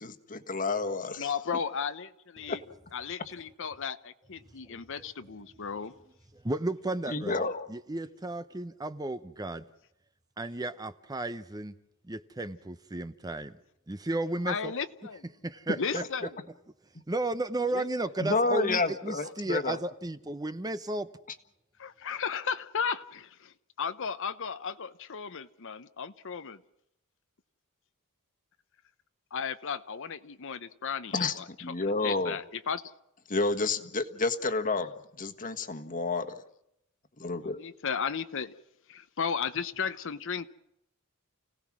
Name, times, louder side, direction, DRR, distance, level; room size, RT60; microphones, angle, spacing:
voice 1, 0.0-1.3 2.5-2.6 7.1-7.7 15.9-16.0 18.2-19.8 31.1-32.4 33.3-34.9 35.2-36.4 37.2-37.6, left 3 dB, 40° left, 1.5 m, -30 dB
voice 2, 1.2-2.6 2.9-5.9 14.4-15.3 15.8-16.3 17.7-17.9 21.8-26.6 29.3-31.4 32.0-32.8 37.5-38.5 38.9-40.5, left 6 dB, 60° left, 0.8 m, -35 dB
voice 3, 4.7-5.1 6.4-7.4 7.7-9.6 10.4-11.7 12.1-13.5 13.9-14.7 15.4-16.0 17.1-21.1, right 2 dB, 15° right, 0.7 m, -33 dB
30.0 x 17.5 x 6.2 m
head